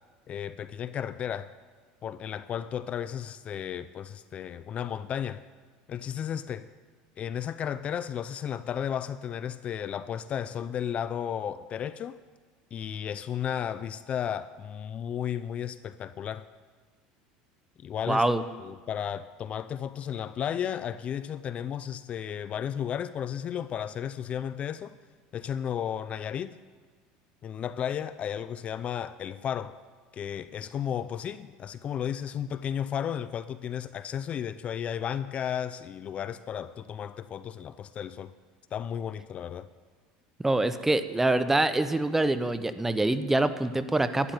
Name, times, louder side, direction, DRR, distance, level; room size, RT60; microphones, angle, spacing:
voice 1, 0.3-1.5 2.0-5.4 5.9-6.7 7.2-12.2 12.7-16.5 17.8-18.3 18.6-25.0 25.3-26.5 27.4-29.8 30.1-38.3 38.7-39.7, left 9 dB, 35° left, 0.5 m, -33 dB
voice 2, 18.1-18.4 40.4-44.3, right 2 dB, 10° right, 0.8 m, -25 dB
12.0 x 11.5 x 8.8 m
supercardioid pair, 115°, 4 cm